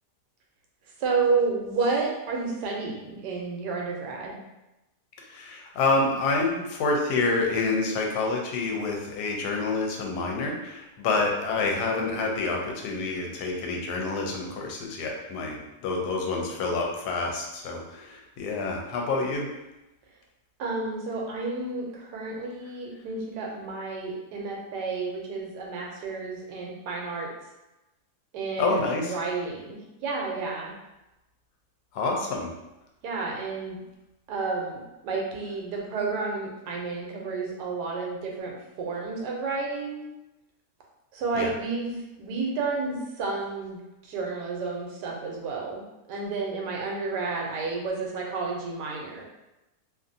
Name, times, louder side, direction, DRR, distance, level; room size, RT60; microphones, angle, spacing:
voice 1, 1.0-4.4 20.6-27.3 28.3-30.7 33.0-33.8 34.3-40.1 41.1-49.2, right 4 dB, 80° right, -1 dB, 1.2 m, -31 dB
voice 2, 5.2-19.5 28.6-29.1 31.9-32.5 41.3-41.5, left 3 dB, 75° left, 0 dB, 1.1 m, -28 dB
2.7 x 2.6 x 2.5 m, 0.96 s
omnidirectional pair, 1.8 m